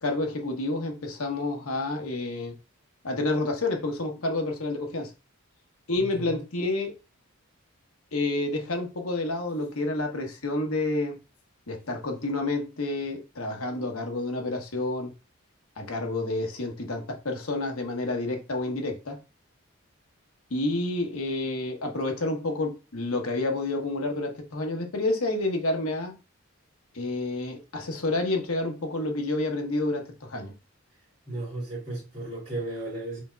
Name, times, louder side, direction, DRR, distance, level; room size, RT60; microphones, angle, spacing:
voice 1, 0.0-2.5 3.0-5.1 5.9-6.9 8.1-11.2 11.7-15.1 15.8-19.2 20.5-26.2 26.9-30.5, left 2 dB, 80° left, 1.1 m, -29 dB
voice 2, 31.3-33.2, right 2 dB, 30° right, 2.6 m, -34 dB
5.0 x 4.0 x 2.2 m
head